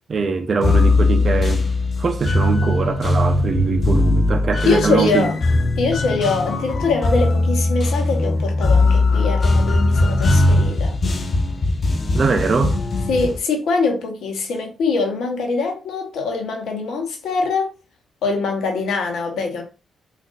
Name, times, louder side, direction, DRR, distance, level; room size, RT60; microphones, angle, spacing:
voice 1, 0.1-1.7 2.0-5.3 12.1-12.8, right 4 dB, 50° right, 0.6 m, -22 dB
sound 1, 0.6-13.4, left 2 dB, 50° left, 0.5 m, -19 dB
voice 2, 4.6-5.4 5.8-10.9 13.1-17.7 18.2-19.6, left 4 dB, 70° left, 0.9 m, -23 dB
3.6 x 2.5 x 2.4 m
hypercardioid pair, 45°, 0 cm